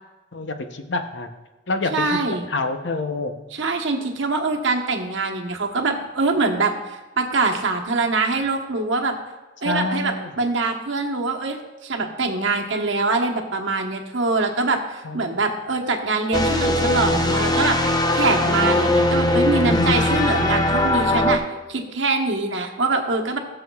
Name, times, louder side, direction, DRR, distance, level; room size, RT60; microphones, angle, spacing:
voice 1, 0.3-1.3 1.7-3.4 9.6-10.3 12.0-12.1 15.0-15.4 20.0-20.3, left 2 dB, 65° left, 7 dB, 0.8 m, -27 dB
voice 2, 1.9-2.5 3.5-9.1 9.6-21.4 21.7-23.4, right 3 dB, 75° right, 2 dB, 1.1 m, -24 dB
sound 1, 16.3-21.4, left 1 dB, 20° left, 0.6 m, -20 dB
18.0 x 6.9 x 2.3 m, 1.1 s
head